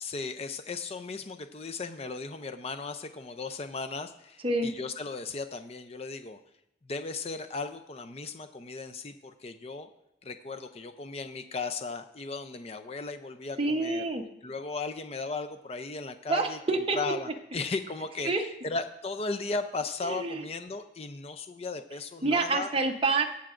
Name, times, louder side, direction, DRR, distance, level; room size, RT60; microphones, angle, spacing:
voice 1, 0.0-6.4 6.9-9.9 10.2-14.0 14.4-16.6 17.0-22.7, left 4 dB, 35° left, 8 dB, 0.5 m, -36 dB
voice 2, 13.6-14.3 16.3-17.1 18.2-18.4 20.0-20.4 22.2-23.2, right 3 dB, 30° right, 2 dB, 0.9 m, -27 dB
21.0 x 7.1 x 2.5 m, 0.85 s
head